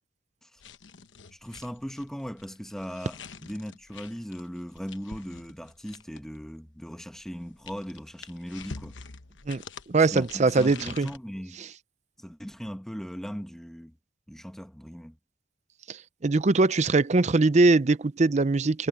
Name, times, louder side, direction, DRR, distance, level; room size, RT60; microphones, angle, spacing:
sound 1, 0.6-6.4 7.2-11.2, left 5 dB, 85° left, 1.1 m, -46 dB
voice 1, 1.3-9.0 10.1-11.6 12.2-14.0 14.3-15.2, equal, 5° left, 1.3 m, -38 dB
voice 2, 9.9-11.1 15.9-16.0 16.2-18.9, right 3 dB, 40° right, 0.6 m, -22 dB
head